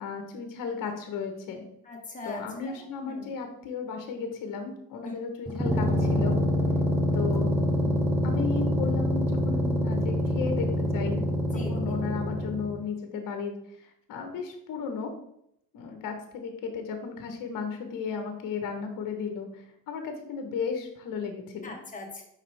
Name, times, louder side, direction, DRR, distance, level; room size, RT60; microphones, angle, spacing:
voice 1, 0.0-1.6 2.2-6.4 7.1-11.3 11.7-15.1 15.7-21.7, left 5 dB, 50° left, 5 dB, 1.3 m, -35 dB
voice 2, 1.8-2.7 3.1-3.3 5.0-5.1 11.5-11.9 21.6-22.2, left 3 dB, 20° left, -1 dB, 1.7 m, -40 dB
sound 1, 5.5-12.8, left 1 dB, 5° right, 0.5 m, -26 dB
5.7 x 5.0 x 3.5 m, 0.75 s
supercardioid pair, 110°, 43 cm